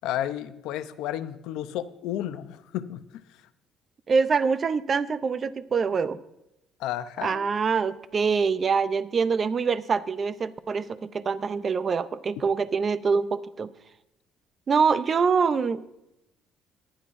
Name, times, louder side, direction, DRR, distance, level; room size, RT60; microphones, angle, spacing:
voice 1, 0.0-3.2 6.8-7.5, left 12 dB, 85° left, 12 dB, 0.6 m, -32 dB
voice 2, 4.1-6.2 7.2-13.7 14.7-16.0, right 5 dB, 30° right, 15 dB, 0.5 m, -25 dB
19.0 x 10.0 x 2.6 m, 0.87 s
cardioid pair, 140°, 0 cm